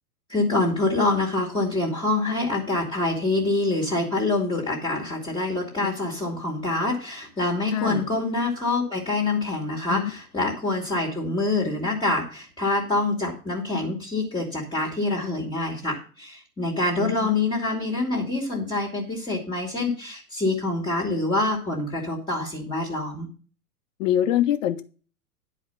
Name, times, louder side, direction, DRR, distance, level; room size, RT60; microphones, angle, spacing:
voice 1, 0.3-23.3, left 2 dB, 10° left, -2 dB, 2.2 m, -26 dB
voice 2, 7.7-8.0 9.9-10.1 17.0-17.3 24.0-24.8, left 11 dB, 55° left, 9 dB, 1.4 m, -24 dB
10.5 x 5.0 x 6.8 m, 0.38 s
hypercardioid pair, 135°, 47 cm